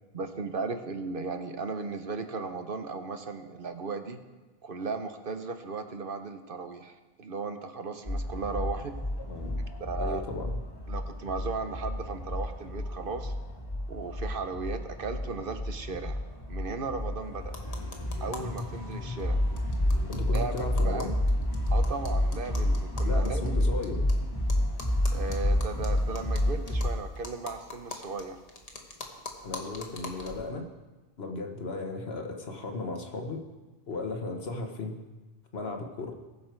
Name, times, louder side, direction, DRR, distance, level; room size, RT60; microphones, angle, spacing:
voice 1, 0.1-4.2 4.6-8.9 9.8-10.2 10.9-13.3 13.9-16.2 16.5-17.5 18.2-19.4 20.3-21.1 21.7-23.7 25.1-28.4, right 4 dB, 60° right, 8 dB, 1.1 m, -36 dB
sound 1, 8.1-26.9, left 1 dB, 25° left, 1.6 m, -30 dB
voice 2, 9.3-9.6 10.0-10.6 20.1-21.1 23.0-24.1 29.4-30.7 31.2-33.4 33.9-34.9 35.5-36.1, left 3 dB, 75° left, 3 dB, 1.5 m, -35 dB
sound 2, 17.5-18.6 18.9-19.0 19.2-19.3 19.6-24.1 24.5-30.5, left 3 dB, 40° left, 1.3 m, -44 dB
19.5 x 6.7 x 4.6 m, 1.2 s
omnidirectional pair, 1.0 m